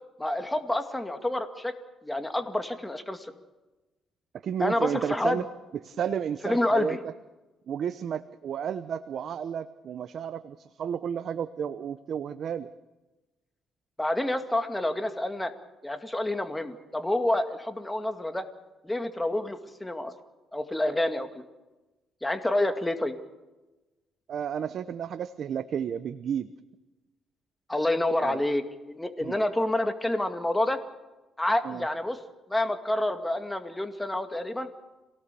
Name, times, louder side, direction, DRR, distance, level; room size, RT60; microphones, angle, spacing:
voice 1, 0.2-1.7 2.0-3.3 4.6-5.4 6.4-7.0 14.0-15.5 15.8-18.5 18.8-20.1 20.5-21.4 22.2-23.1 27.7-30.8 31.4-32.2 32.5-34.7, left 1 dB, 10° left, 7 dB, 2.2 m, -28 dB
voice 2, 4.4-5.4 5.8-7.0 7.7-12.7 24.3-26.5 28.2-28.4 29.2-29.4 31.6-31.8, right 8 dB, 65° right, 11 dB, 0.9 m, -32 dB
27.0 x 18.5 x 6.9 m, 1.1 s
cardioid pair, 90°, 0 cm